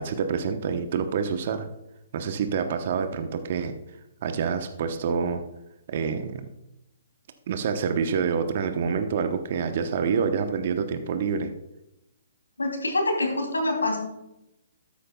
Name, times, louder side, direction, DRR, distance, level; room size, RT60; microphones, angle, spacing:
voice 1, 0.0-1.7 2.1-3.7 4.2-5.4 5.9-6.4 7.5-11.5, right 6 dB, 50° right, 7 dB, 0.9 m, -27 dB
voice 2, 12.6-14.0, left 2 dB, 85° left, 2 dB, 3.0 m, -25 dB
13.0 x 10.0 x 2.3 m, 0.89 s
figure-of-eight pair, 130°, 0 cm